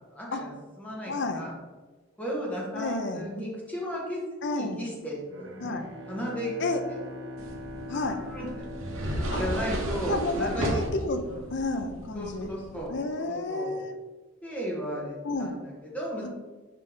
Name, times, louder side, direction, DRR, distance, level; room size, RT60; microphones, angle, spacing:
voice 1, 0.1-1.5 2.2-5.8 6.1-6.5 7.9-8.5 9.4-10.8 11.3-11.4 12.1-12.9 13.2-13.8 14.4-16.3, equal, 5° left, -4 dB, 1.5 m, -35 dB
voice 2, 1.1-1.4 2.7-3.3 4.4-4.8 5.6-5.9 6.6-6.8 7.9-8.2 9.3-9.5 10.0-11.2 11.5-12.5 12.9-13.9 15.2-15.6 16.2-16.3, left 3 dB, 55° left, 7 dB, 0.6 m, -31 dB
Bowed string instrument, 5.3-10.2, left 1 dB, 65° right, 0.8 m, -42 dB
sound 1, 7.4-12.9, equal, 80° right, 1.2 m, -34 dB
5.9 x 4.6 x 3.5 m, 1.3 s
head